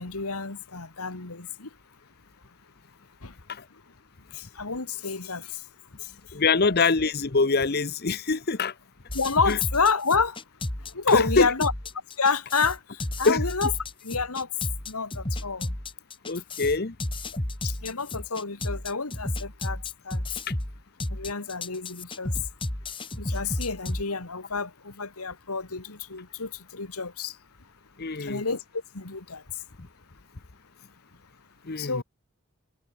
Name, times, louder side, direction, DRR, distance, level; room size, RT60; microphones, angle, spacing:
voice 1, 0.0-1.7 3.2-3.3 4.3-5.6 6.0-6.1 9.1-10.4 10.9-11.7 12.2-13.7 14.0-14.5 14.9-15.7 17.6-20.2 21.1-22.3 23.2-27.4 28.2-28.6 28.9-29.4 31.8-32.0, left 5 dB, 85° left, 2.2 m, -29 dB
voice 2, 6.3-8.7 9.5-9.6 11.1-11.5 13.2-13.4 16.2-17.0 28.0-28.4 29.8-29.9 31.6-32.0, left 4 dB, 45° left, 1.0 m, -24 dB
sound 1, 9.1-24.0, left 1 dB, 25° left, 2.0 m, -32 dB
head